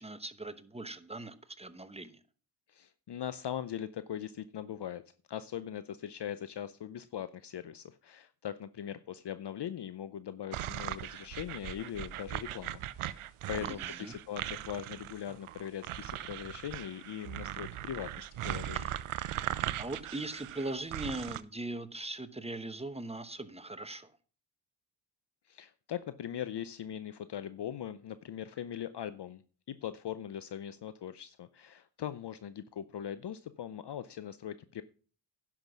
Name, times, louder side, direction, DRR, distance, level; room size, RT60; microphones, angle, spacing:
voice 1, 0.0-2.2 13.6-14.1 18.7-19.0 19.8-24.1, right 2 dB, 10° right, 11 dB, 1.0 m, -40 dB
voice 2, 2.7-5.0 5.3-18.9 25.5-29.4 29.7-34.8, left 10 dB, 55° left, 13 dB, 0.7 m, -40 dB
sound 1, 10.5-21.4, right 12 dB, 80° right, 0.7 m, -39 dB
10.5 x 6.0 x 6.1 m, 0.40 s
cardioid pair, 65°, 50 cm